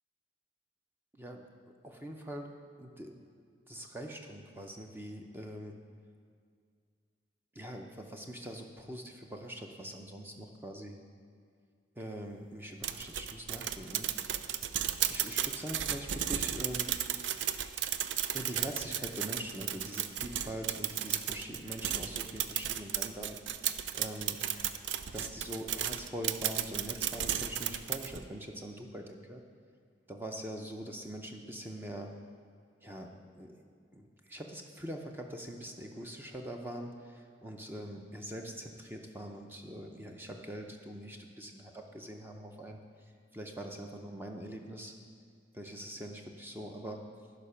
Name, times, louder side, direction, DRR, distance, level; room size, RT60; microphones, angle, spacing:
voice 1, 1.1-1.5 1.8-2.5 2.8-3.2 3.7-5.8 7.5-11.0 12.0-14.1 15.1-16.9 18.3-23.4 23.9-24.4 25.1-29.4 30.1-32.1 32.8-33.6 33.9-44.9 45.5-47.0, right 1 dB, 10° right, 2 dB, 0.5 m, -43 dB
sound 1, 12.8-28.2, right 10 dB, 85° right, 0.4 m, -34 dB
11.5 x 5.1 x 5.6 m, 2.2 s
head